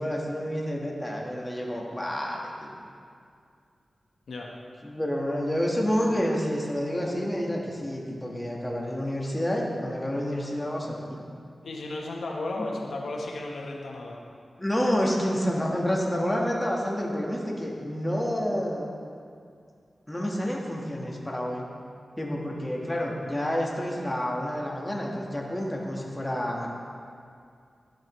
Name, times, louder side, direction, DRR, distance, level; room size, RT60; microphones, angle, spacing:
voice 1, 0.0-2.7 4.8-11.3 12.6-12.7 14.6-18.9 20.1-21.7 22.2-26.7, equal, 10° left, -2 dB, 1.3 m, -29 dB
voice 2, 11.6-14.2, left 2 dB, 90° left, -1 dB, 0.9 m, -34 dB
11.5 x 7.7 x 3.0 m, 2.3 s
wide cardioid pair, 75°, 0 cm